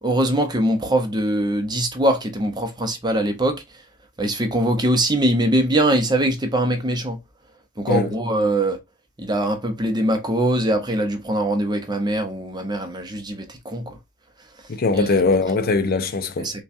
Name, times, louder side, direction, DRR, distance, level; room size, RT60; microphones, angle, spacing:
voice 1, 0.0-3.6 4.2-7.2 7.8-8.8 9.2-14.0 14.9-15.1 16.4-16.6, right 1 dB, 20° right, 0.7 m, -22 dB
voice 2, 14.7-16.5, left 3 dB, 45° left, 0.5 m, -21 dB
5.6 x 2.3 x 2.6 m
head